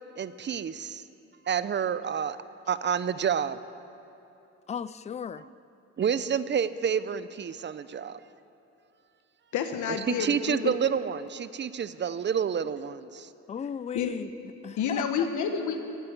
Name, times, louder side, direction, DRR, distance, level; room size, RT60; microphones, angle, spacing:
voice 1, 0.2-1.0 1.5-2.4 2.7-3.6 6.0-8.2 10.1-13.3, right 7 dB, 35° right, 15 dB, 0.6 m, -29 dB
voice 2, 4.7-5.4 13.5-14.3 14.6-15.3, left 7 dB, 25° left, 17 dB, 0.4 m, -36 dB
voice 3, 9.5-10.7 13.9-14.2 14.8-15.8, left 7 dB, 75° left, 6 dB, 1.1 m, -29 dB
15.5 x 9.5 x 8.7 m, 2.9 s
cardioid pair, 90°, 30 cm